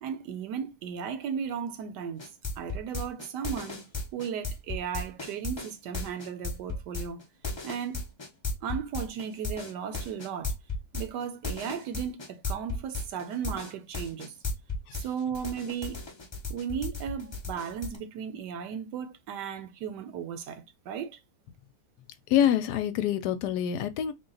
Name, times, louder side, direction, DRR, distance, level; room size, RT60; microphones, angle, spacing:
voice 1, 0.0-2.3 2.6-3.8 4.1-7.2 7.6-8.0 8.6-10.5 10.9-14.3 14.9-16.0 16.5-21.2, right 7 dB, 80° right, 1.3 m, -35 dB
sound 1, 2.2-15.1 15.3-18.0, left 3 dB, 45° left, 0.3 m, -35 dB
voice 2, 22.3-24.1, left 10 dB, 75° left, 1.1 m, -26 dB
4.0 x 2.3 x 3.8 m
omnidirectional pair, 1.8 m